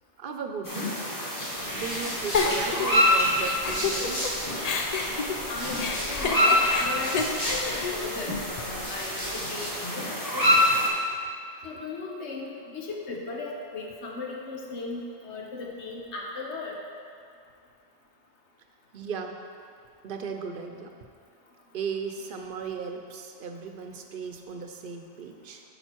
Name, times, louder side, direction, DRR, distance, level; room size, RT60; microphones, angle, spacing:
voice 1, 0.2-0.9 1.7-4.3 18.9-19.4 20.0-20.9 21.7-25.6, right 5 dB, 55° right, 4 dB, 0.8 m, -36 dB
sound 1, 0.6-10.9, left 1 dB, 20° left, 1.5 m, -27 dB
sound 2, 1.5-4.6 4.9-8.1 8.6-9.8, equal, 75° left, 2.6 m, -37 dB
Giggle, 2.3-4.3 4.6-8.9, left 4 dB, 50° left, 0.5 m, -30 dB
voice 2, 5.5-10.8 11.6-16.7, left 3 dB, 90° left, -1 dB, 1.3 m, -37 dB
9.1 x 5.1 x 4.5 m, 2.4 s
omnidirectional pair, 1.1 m